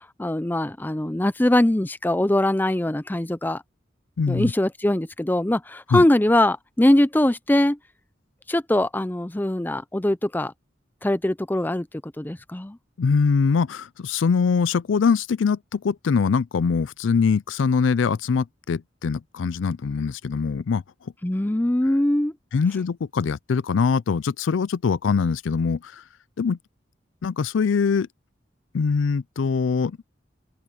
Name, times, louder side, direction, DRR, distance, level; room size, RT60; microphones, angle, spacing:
voice 1, 0.0-3.6 4.3-7.8 8.5-10.5 11.0-11.9 12.2-12.8 21.2-22.3, left 1 dB, 10° left, 0.5 m, -22 dB
voice 2, 4.2-4.5 5.9-6.0 13.0-20.8 21.9-22.0 22.5-26.0 26.4-26.6 27.2-28.1 28.7-30.0, left 5 dB, 90° left, 0.4 m, -23 dB
head